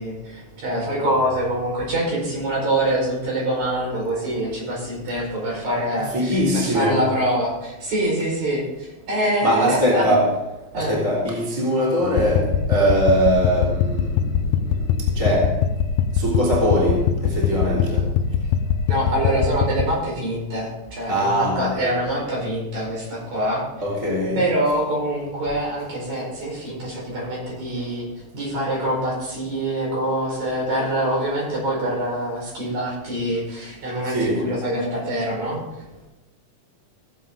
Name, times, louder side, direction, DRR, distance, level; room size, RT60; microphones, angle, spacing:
voice 1, 0.0-10.1 10.7-11.0 18.9-23.6 24.4-28.0 28.3-35.6, right 1 dB, 65° right, 6.2 m, -25 dB
voice 2, 6.0-7.1 9.4-10.3 10.7-14.4 14.7-14.8 15.1-15.5 16.2-18.0 21.1-21.9 23.8-24.4 34.1-34.5, equal, 10° right, 3.2 m, -21 dB
sound 1, 12.0-19.8, left 7 dB, 75° left, 2.2 m, -22 dB
16.5 x 8.1 x 3.9 m
omnidirectional pair, 3.5 m